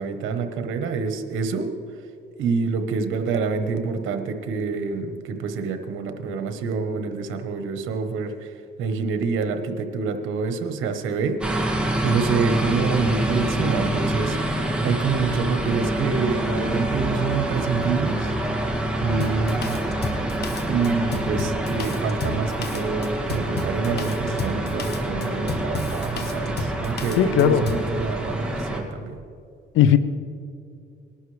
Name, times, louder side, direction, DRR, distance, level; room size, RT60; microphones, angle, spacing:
voice 1, 0.0-1.7 2.4-8.5 8.8-11.4 12.0-14.4 14.8-18.3 19.0-20.0 20.6-29.2, right 5 dB, 85° right, 7 dB, 1.1 m, -27 dB
sound 1, 11.4-28.8, right 1 dB, 5° right, 2.0 m, -26 dB
Drum kit, 19.2-27.9, left 3 dB, 55° left, 1.3 m, -32 dB
voice 2, 27.2-27.7 29.7-30.0, left 10 dB, 80° left, 13 dB, 0.6 m, -17 dB
19.5 x 11.5 x 3.3 m, 2.4 s
cardioid pair, 90°, 20 cm